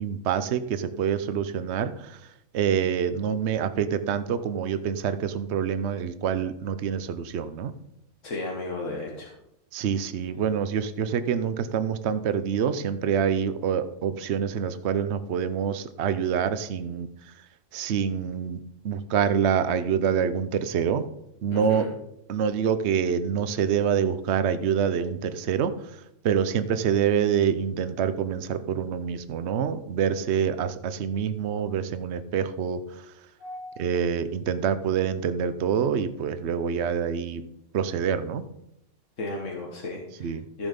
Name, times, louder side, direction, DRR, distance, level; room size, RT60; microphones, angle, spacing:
voice 1, 0.0-2.2 2.5-7.7 9.7-17.1 17.7-21.0 21.4-21.8 22.3-25.7 26.2-33.0 33.8-37.4 37.7-38.4 40.2-40.4, right 7 dB, 65° right, 12 dB, 1.0 m, -26 dB
voice 2, 8.2-9.3 21.5-21.9 33.4-33.8 39.2-40.7, left 2 dB, 85° left, 0 dB, 1.9 m, -34 dB
14.0 x 7.2 x 5.2 m, 0.80 s
omnidirectional pair, 1.3 m